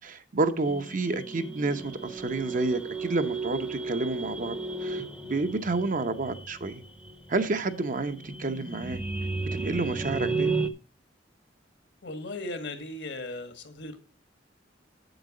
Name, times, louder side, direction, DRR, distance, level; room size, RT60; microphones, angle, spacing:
voice 1, 0.0-6.8 7.3-9.0 9.5-10.5, right 3 dB, 45° right, 0.7 m, -30 dB
sound 1, 0.6-10.7, right 3 dB, 5° right, 0.7 m, -34 dB
voice 2, 12.0-14.0, left 2 dB, 70° left, 1.5 m, -37 dB
8.0 x 7.3 x 4.8 m
head